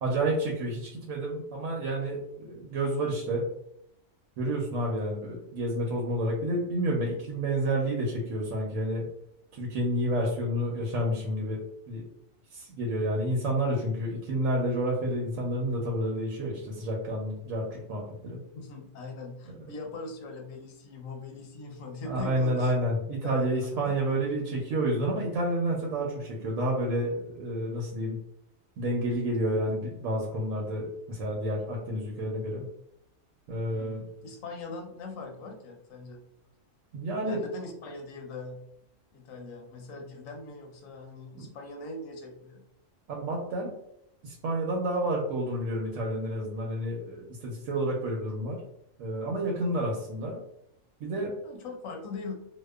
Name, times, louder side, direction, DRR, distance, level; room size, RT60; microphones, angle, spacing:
voice 1, 0.0-3.5 4.4-9.0 9.5-11.6 11.9-12.0 12.5-18.4 22.0-28.2 28.8-32.7 33.5-34.0 36.9-37.4 41.4-41.5 43.1-43.7 44.2-48.6 49.0-50.4 51.0-51.3, right 1 dB, 90° right, -2 dB, 1.0 m, -30 dB
voice 2, 18.5-22.7 23.2-24.0 33.7-36.2 37.2-38.7 39.1-42.7 51.4-52.3, left 3 dB, 85° left, 2 dB, 1.0 m, -41 dB
2.7 x 2.1 x 2.2 m, 0.76 s
omnidirectional pair, 1.4 m